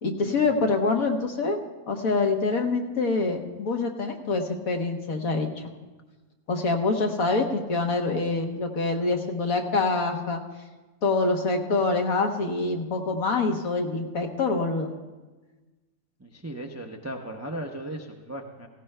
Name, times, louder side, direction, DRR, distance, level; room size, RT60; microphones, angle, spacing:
voice 1, 0.0-1.6 1.9-5.6 6.5-10.4 11.0-14.9, left 3 dB, 70° left, 3 dB, 1.5 m, -25 dB
voice 2, 16.2-18.7, right 1 dB, 20° right, 2 dB, 0.4 m, -37 dB
17.5 x 16.0 x 2.2 m, 1.2 s
omnidirectional pair, 1.6 m